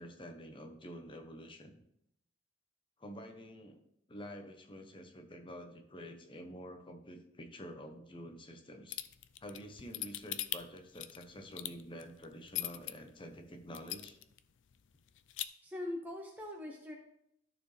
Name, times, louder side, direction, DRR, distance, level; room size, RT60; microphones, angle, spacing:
voice 1, 0.0-1.8 3.0-3.8 4.1-9.0 9.4-14.2, equal, 30° left, 4 dB, 0.9 m, -48 dB
sound 1, 8.9-12.9 13.4-13.5 13.7-14.4 14.7-14.8 15.1-15.4, left 14 dB, 80° left, 0.4 m, -39 dB
voice 2, 15.6-16.9, left 1 dB, 10° right, 0 dB, 0.8 m, -41 dB
13.0 x 4.5 x 3.3 m, 0.76 s
head